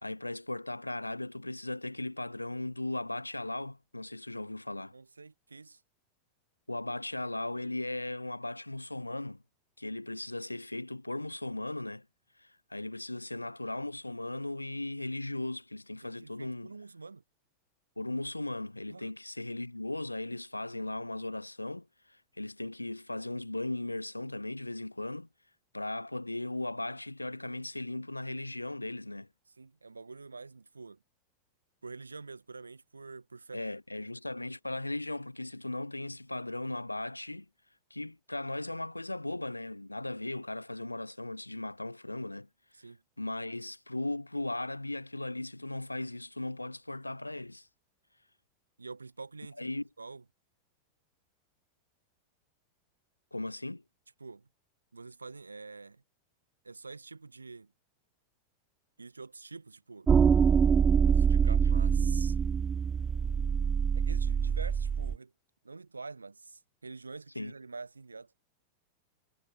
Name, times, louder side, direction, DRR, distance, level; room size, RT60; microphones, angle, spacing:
voice 1, 0.0-5.0 6.7-9.4 9.8-12.0 12.4-16.7 18.0-25.3 25.7-29.3 33.5-37.5 37.9-42.5 42.8-42.9 43.2-47.7 49.6-49.8 53.3-53.8 67.3-67.5, left 2 dB, 85° left, 2.5 m, -37 dB
voice 2, 4.9-5.8 16.0-17.2 18.9-19.1 29.6-31.0 31.8-33.6 42.7-43.0 48.8-50.2 54.2-54.5 54.9-56.0 56.6-57.7 59.0-60.1 61.0-62.4 63.9-65.3 65.6-68.5, right 4 dB, 80° right, 6.1 m, -46 dB
sound 1, 60.1-65.2, right 6 dB, 20° right, 0.6 m, -25 dB
figure-of-eight pair, 90°, 0 cm